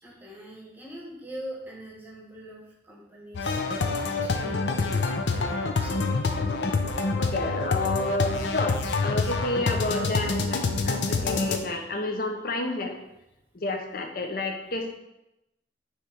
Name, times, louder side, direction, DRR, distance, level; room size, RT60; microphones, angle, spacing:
voice 1, 0.0-6.0 11.3-11.8, equal, 10° right, -3 dB, 1.0 m, -43 dB
sound 1, 3.3-11.6, left 3 dB, 85° left, 0.6 m, -27 dB
voice 2, 7.2-13.0 13.5-14.9, left 2 dB, 55° left, 3 dB, 0.8 m, -30 dB
6.4 x 3.1 x 4.9 m, 0.90 s
head